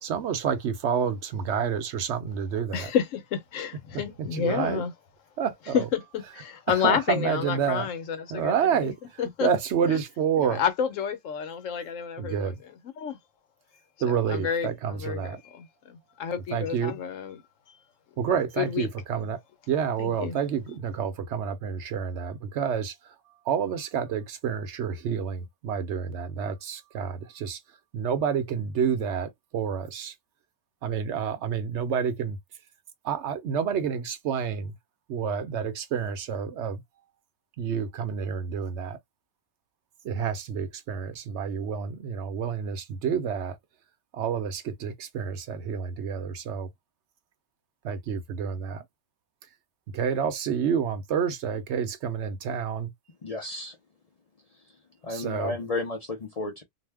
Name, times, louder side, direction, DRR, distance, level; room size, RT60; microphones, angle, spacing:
voice 1, 0.0-2.9 4.2-4.8 5.4-5.8 6.8-7.9 8.3-9.0 9.4-10.6 12.2-12.5 14.0-15.4 16.5-17.0 18.2-19.4 19.7-22.9 23.5-27.6 27.9-30.1 30.8-32.4 33.0-34.7 35.1-36.8 37.6-39.0 40.0-43.6 44.1-46.7 47.8-48.8 49.9-52.9 55.1-55.5, right 7 dB, 65° right, 0.9 m, -29 dB
voice 2, 2.7-4.9 5.7-8.6 8.8-8.9 9.2-9.5 9.9-10.0 10.4-13.2 14.0-17.4 18.6-19.3 20.0-20.4, left 8 dB, 80° left, 1.1 m, -30 dB
voice 3, 53.2-53.8 55.0-56.6, left 2 dB, 45° left, 0.5 m, -32 dB
2.5 x 2.1 x 3.4 m
omnidirectional pair, 1.3 m